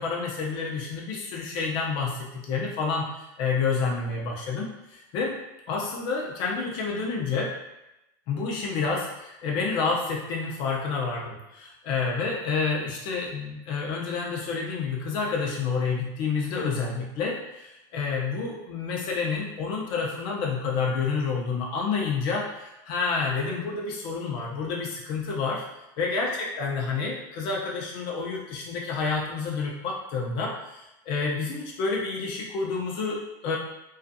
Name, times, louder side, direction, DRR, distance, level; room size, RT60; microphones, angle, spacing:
voice 1, 0.0-5.4 5.7-7.5 8.3-25.6 26.0-33.6, left 4 dB, 50° left, -2 dB, 0.5 m, -29 dB
2.5 x 2.3 x 2.5 m, 0.93 s
supercardioid pair, 135°, 11 cm